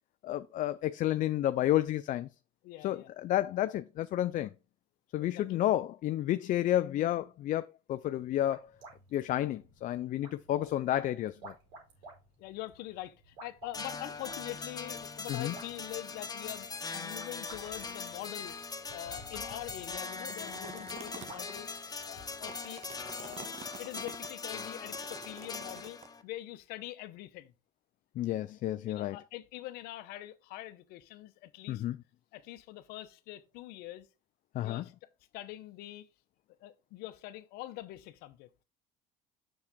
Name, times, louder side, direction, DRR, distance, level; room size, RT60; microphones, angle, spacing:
voice 1, 0.2-2.3 2.8-4.5 5.1-8.6 9.1-11.5 15.3-15.5 28.2-29.2 31.7-32.0 34.5-34.8, left 13 dB, 55° left, 0.5 m, -31 dB
voice 2, 2.6-3.1 5.2-5.6 10.6-10.7 12.4-18.6 18.9-21.7 22.0-22.8 23.2-27.5 28.9-31.8 32.3-34.1 34.6-34.9 35.3-36.1 36.6-38.5, left 15 dB, 75° left, 0.9 m, -44 dB
sound 1, 8.0-22.6, right 2 dB, 85° right, 4.6 m, -55 dB
sound 2, 13.7-26.2, left 4 dB, 25° left, 1.1 m, -41 dB
sound 3, 20.3-21.6 22.2-24.3 24.9-26.1, right 6 dB, 40° right, 1.2 m, -48 dB
7.1 x 6.5 x 3.6 m
supercardioid pair, 85°, 16 cm